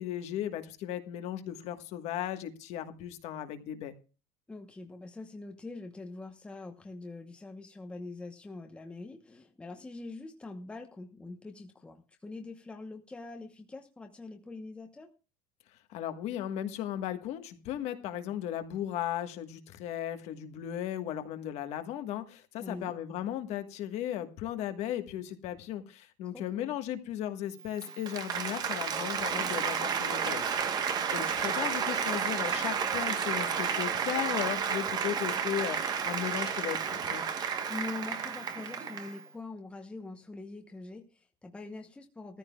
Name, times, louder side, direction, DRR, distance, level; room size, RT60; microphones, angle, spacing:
voice 1, 0.0-3.9 15.9-37.2, left 11 dB, 50° left, 8 dB, 1.4 m, -36 dB
voice 2, 4.5-15.1 22.6-23.0 26.3-26.7 37.7-42.4, left 2 dB, 10° left, 4 dB, 1.0 m, -44 dB
Applause, 27.7-39.2, right 6 dB, 30° right, 1.1 m, -32 dB
18.0 x 14.0 x 2.3 m, 0.33 s
cardioid pair, 165°, 14 cm